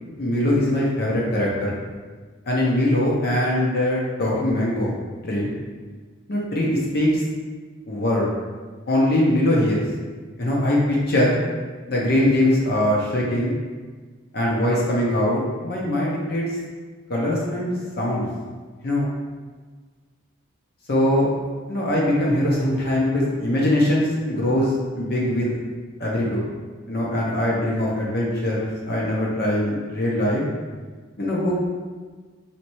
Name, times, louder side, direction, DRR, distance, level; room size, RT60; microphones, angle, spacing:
voice 1, 0.2-1.8 2.5-4.9 5.2-5.5 6.3-7.2 7.9-8.3 8.9-9.8 10.4-11.4 11.9-13.6 14.3-16.4 17.1-18.3 18.8-19.1 20.9-25.5 26.0-26.4 26.9-30.4 31.2-31.6, left 1 dB, 50° left, -4 dB, 0.7 m, -22 dB
4.3 x 3.2 x 3.0 m, 1.4 s
head